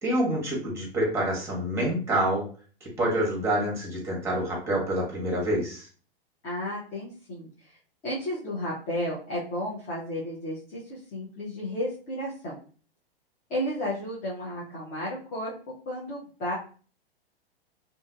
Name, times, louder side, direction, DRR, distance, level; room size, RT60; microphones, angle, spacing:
voice 1, 0.0-2.5 2.8-5.9, right 1 dB, 10° right, -2 dB, 1.1 m, -27 dB
voice 2, 6.4-7.8 8.0-12.5 13.5-15.5 15.9-16.5, left 1 dB, 25° left, -6 dB, 0.8 m, -33 dB
2.7 x 2.6 x 2.3 m, 0.40 s
figure-of-eight pair, 105°, 31 cm